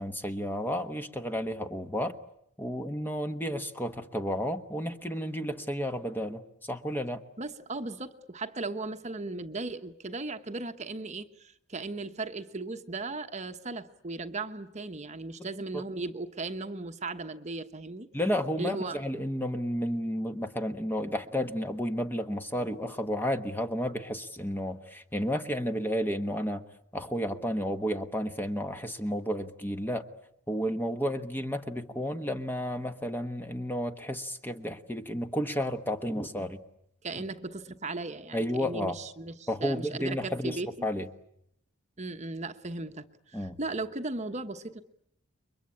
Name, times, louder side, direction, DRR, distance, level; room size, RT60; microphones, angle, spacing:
voice 1, 0.0-2.2 2.6-7.2 15.7-15.8 18.1-26.6 26.9-30.1 30.5-36.6 38.3-39.0 39.5-41.1 43.3-43.6, equal, 10° left, 7 dB, 1.1 m, -32 dB
voice 2, 7.4-18.1 18.6-19.0 37.0-40.9 42.0-44.8, right 3 dB, 30° right, 8 dB, 1.1 m, -37 dB
30.0 x 23.0 x 8.6 m, 0.77 s
head